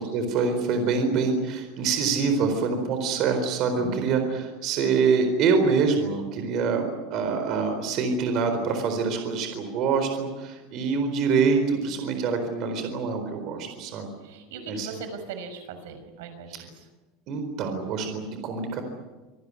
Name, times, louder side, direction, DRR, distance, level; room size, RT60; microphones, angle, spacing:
voice 1, 0.0-14.1 14.7-15.0 16.5-16.6 17.3-18.8, right 5 dB, 40° right, 6 dB, 4.2 m, -25 dB
voice 2, 14.2-16.7, right 4 dB, 80° right, 8 dB, 5.9 m, -39 dB
26.0 x 18.5 x 9.8 m, 1.2 s
supercardioid pair, 170°, 0 cm